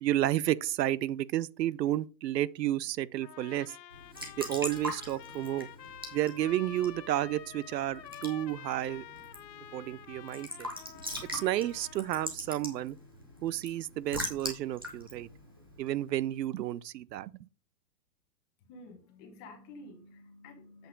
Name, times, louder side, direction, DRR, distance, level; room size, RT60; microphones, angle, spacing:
voice 1, 0.0-3.7 4.4-5.7 6.1-9.0 9.7-10.7 11.3-13.0 13.4-15.3 15.8-17.3, right 13 dB, 85° right, 0.6 m, -31 dB
Trumpet, 3.2-12.3, left 10 dB, 90° left, 0.9 m, -49 dB
Raindrop / Drip / Trickle dribble, 3.9-16.4, left 1 dB, 15° right, 0.4 m, -43 dB
voice 2, 18.6-20.9, left 2 dB, 20° left, 1.5 m, -50 dB
8.0 x 4.4 x 5.3 m
hypercardioid pair, 165°, 49 cm